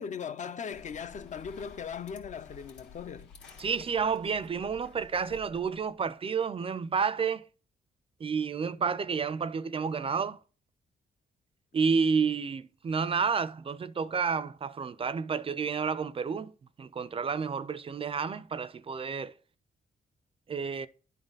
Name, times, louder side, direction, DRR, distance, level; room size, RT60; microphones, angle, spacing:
voice 1, 0.0-3.3, left 7 dB, 45° left, 0.4 m, -39 dB
sound 1, 0.7-6.1, left 5 dB, 85° left, 2.0 m, -52 dB
voice 2, 3.6-7.5 8.2-10.4 11.7-16.5 16.8-19.3 20.5-20.9, right 5 dB, 30° right, 0.4 m, -30 dB
11.0 x 4.0 x 3.9 m
cardioid pair, 130°, 18 cm